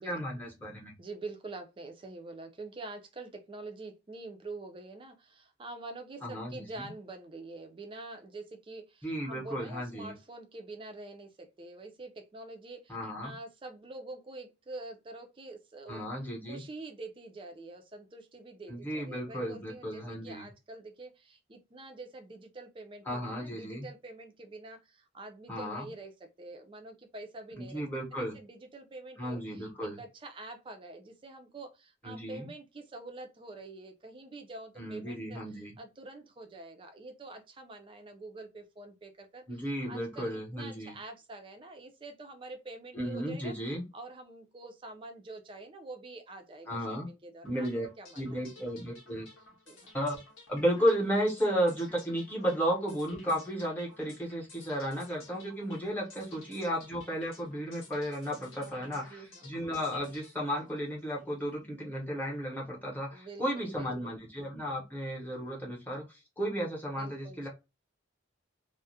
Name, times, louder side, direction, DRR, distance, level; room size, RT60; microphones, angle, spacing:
voice 1, 0.0-0.9 6.2-6.8 9.0-10.1 12.9-13.3 15.9-16.6 18.7-20.5 23.1-23.9 25.5-25.9 27.6-28.4 29.2-30.0 32.0-32.5 34.8-35.7 39.5-41.0 42.9-43.8 46.7-47.1 47.4-47.9 48.2-49.3 49.9-50.2 50.5-67.5, equal, 10° left, 0.8 m, -34 dB
voice 2, 1.0-16.1 16.4-26.1 26.4-27.8 28.1-39.4 39.9-43.5 43.9-47.7 48.0-48.5 49.7-50.0 55.9-56.3 58.6-59.5 63.1-64.2 66.9-67.5, right 2 dB, 25° right, 0.4 m, -46 dB
sound 1, 47.4-61.5, left 3 dB, 85° left, 0.9 m, -55 dB
2.3 x 2.0 x 2.6 m
head